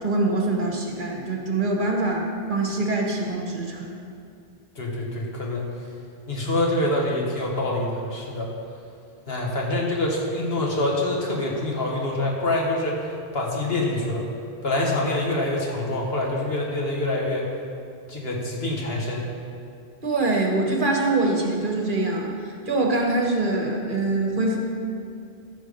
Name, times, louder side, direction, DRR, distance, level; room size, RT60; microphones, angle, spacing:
voice 1, 0.0-4.0 20.0-24.6, right 2 dB, 55° right, 0 dB, 1.5 m, -24 dB
voice 2, 4.8-5.7 6.3-8.5 9.3-14.3 14.6-17.5 18.1-19.3, left 1 dB, 70° left, -2 dB, 1.9 m, -26 dB
14.0 x 6.1 x 5.4 m, 2.5 s
omnidirectional pair, 1.1 m